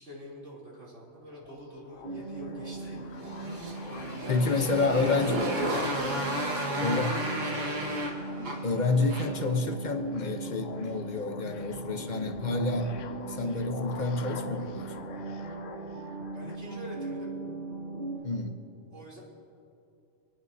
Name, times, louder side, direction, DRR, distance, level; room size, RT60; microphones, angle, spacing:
voice 1, 0.0-3.9 4.2-6.2 6.4-8.1 16.3-17.3 18.9-19.2, equal, 65° right, -5 dB, 3.7 m, -45 dB
sound 1, 1.3-16.6, left 6 dB, 85° left, 1.0 m, -47 dB
sound 2, 2.0-18.2, right 3 dB, 50° right, 2.7 m, -39 dB
Motorcycle, 3.2-9.5, equal, 85° right, 2.1 m, -33 dB
voice 2, 4.3-5.4 6.8-7.1 8.6-12.9 13.3-14.9 18.2-18.6, left 3 dB, 40° left, 6 dB, 1.0 m, -29 dB
29.5 x 9.9 x 2.8 m, 2.7 s
omnidirectional pair, 1.3 m